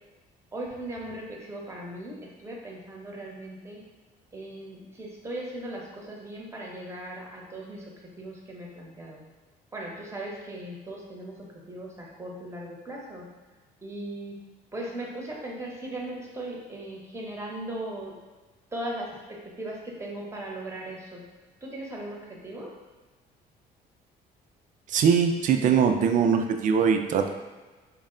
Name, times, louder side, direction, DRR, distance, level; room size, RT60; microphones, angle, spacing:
voice 1, 0.5-3.8 4.3-9.2 9.7-13.3 13.8-14.4 14.7-18.1 18.7-21.2 21.6-22.7, right 1 dB, 15° right, -2 dB, 0.9 m, -38 dB
voice 2, 24.9-27.3, right 6 dB, 50° right, 6 dB, 0.4 m, -22 dB
4.5 x 2.1 x 3.7 m, 1.3 s
cardioid pair, 110°, 17 cm